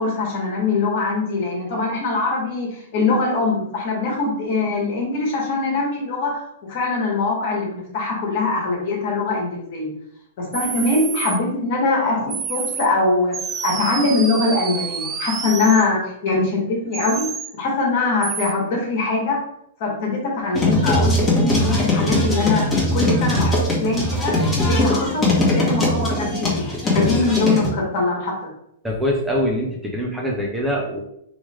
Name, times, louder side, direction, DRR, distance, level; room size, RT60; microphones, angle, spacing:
voice 1, 0.0-6.4 6.7-9.9 10.4-13.3 13.6-17.2 17.6-19.4 19.8-22.6 22.9-24.4 24.6-26.3 26.5-28.3, left 3 dB, 50° left, -2 dB, 1.4 m, -22 dB
sound 1, 10.5-11.4 12.3-12.9 13.3-15.9 16.9-17.5 18.2-18.5, right 6 dB, 20° right, 0.4 m, -29 dB
sound 2, 20.5-27.7, left 1 dB, 10° left, 1.3 m, -20 dB
voice 2, 28.8-31.0, equal, 5° right, -3 dB, 0.8 m, -23 dB
3.2 x 3.0 x 3.3 m, 0.74 s
figure-of-eight pair, 105°, 0 cm